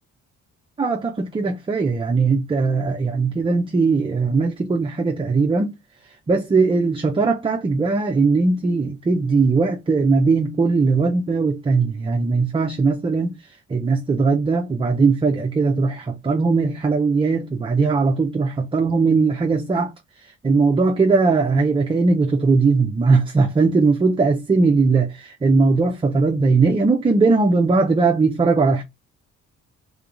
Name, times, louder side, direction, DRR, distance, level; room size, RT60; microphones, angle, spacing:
voice 1, 0.8-5.7 6.3-13.4 13.7-19.9 20.2-28.8, right 4 dB, 20° right, 0.5 m, -19 dB
3.7 x 3.4 x 2.4 m
cardioid pair, 90°, 30 cm